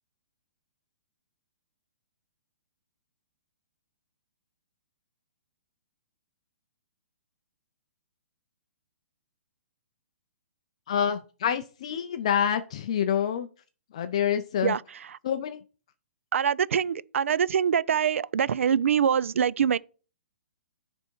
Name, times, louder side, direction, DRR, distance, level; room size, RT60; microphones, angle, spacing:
voice 1, 10.9-13.5 13.9-14.8 15.2-15.6, left 8 dB, 30° left, 0.4 m, -27 dB
voice 2, 16.3-19.8, right 8 dB, 85° right, 0.4 m, -24 dB
9.5 x 3.5 x 4.5 m
hypercardioid pair, 180°, 7 cm